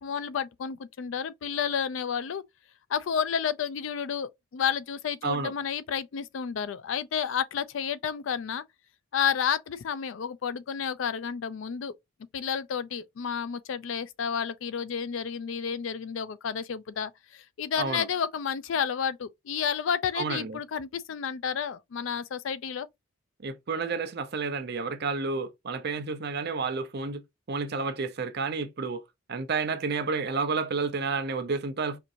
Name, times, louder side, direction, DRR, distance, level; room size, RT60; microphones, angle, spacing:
voice 1, 0.0-2.4 2.9-8.6 9.1-11.9 12.3-22.9, left 7 dB, 70° left, 0.4 m, -31 dB
voice 2, 20.2-20.6 23.4-27.2 27.5-29.0 29.3-32.0, right 4 dB, 55° right, 0.6 m, -30 dB
4.4 x 2.6 x 2.5 m
head